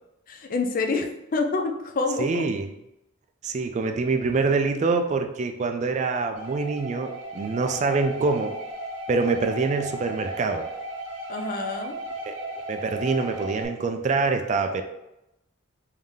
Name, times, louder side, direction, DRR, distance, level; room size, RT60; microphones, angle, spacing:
voice 1, 0.3-2.5 11.3-12.0, left 3 dB, 45° left, 5 dB, 0.4 m, -27 dB
voice 2, 2.2-2.7 3.4-8.5 9.1-10.7 12.2-12.4 12.7-14.8, right 4 dB, 35° right, 6 dB, 0.3 m, -25 dB
sound 1, 6.4-13.7, right 1 dB, 65° right, 0.8 m, -36 dB
3.5 x 2.7 x 3.4 m, 0.88 s
head